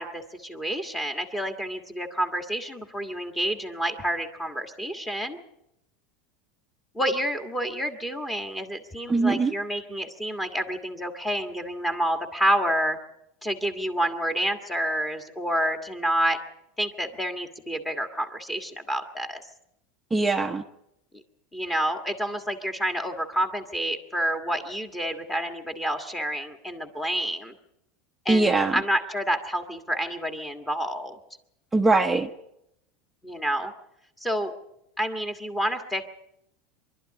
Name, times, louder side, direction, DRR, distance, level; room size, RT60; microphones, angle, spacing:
voice 1, 0.0-5.4 6.9-13.0 13.4-16.4 16.8-19.4 21.5-27.5 28.2-31.2 33.2-33.7 34.2-34.5 35.0-36.1, equal, 10° left, 6 dB, 1.6 m, -29 dB
voice 2, 9.1-9.5 20.1-20.6 28.3-28.8 31.7-32.3, right 3 dB, 10° right, 5 dB, 0.8 m, -21 dB
25.0 x 12.0 x 9.6 m, 0.83 s
supercardioid pair, 165°, 0 cm